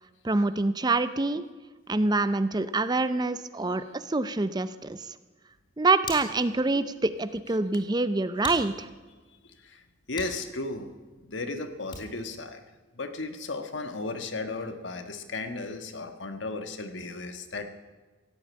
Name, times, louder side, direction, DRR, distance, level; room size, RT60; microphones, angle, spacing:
voice 1, 0.2-1.4 1.9-5.0 5.8-8.9, right 3 dB, 20° right, 13 dB, 0.5 m, -26 dB
Hands, 5.5-12.3, left 2 dB, 25° left, 3.4 m, -45 dB
voice 2, 10.1-10.9 11.2-12.6 12.9-17.7, left 3 dB, 75° left, 7 dB, 1.5 m, -35 dB
17.0 x 8.8 x 8.8 m, 1.3 s
head